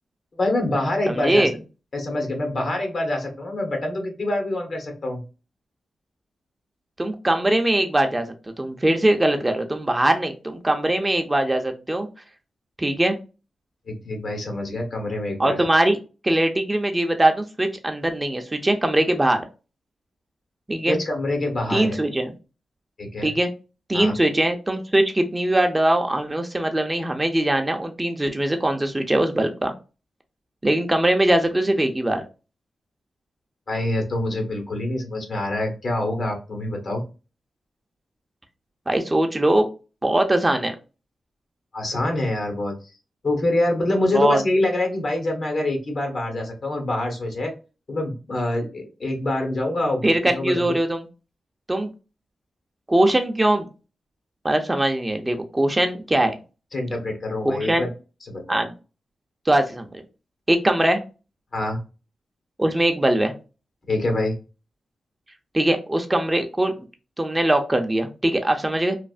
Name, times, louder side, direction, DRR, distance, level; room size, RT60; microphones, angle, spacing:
voice 1, 0.4-1.5 1.9-5.2 13.9-15.7 20.8-22.0 23.0-23.3 23.9-24.1 33.7-37.0 41.7-42.7 43.2-47.5 47.9-50.7 56.7-57.9 58.2-58.6 61.5-61.8 63.9-64.4, left 1 dB, 60° left, 3 dB, 1.1 m, -25 dB
voice 2, 1.1-1.5 7.0-8.2 8.6-12.1 12.8-13.2 15.4-16.0 16.2-19.4 20.7-21.0 21.7-22.3 23.2-23.5 23.9-29.7 30.6-32.2 38.9-39.7 40.0-40.7 44.1-44.4 50.0-51.0 51.7-51.9 52.9-53.7 54.4-56.3 57.4-57.8 58.5-58.7 59.5-59.9 60.5-61.0 62.6-63.3 65.5-66.9 67.2-68.9, right 1 dB, 20° right, 5 dB, 0.6 m, -21 dB
3.1 x 2.0 x 2.5 m, 0.32 s
cardioid pair, 55°, 0 cm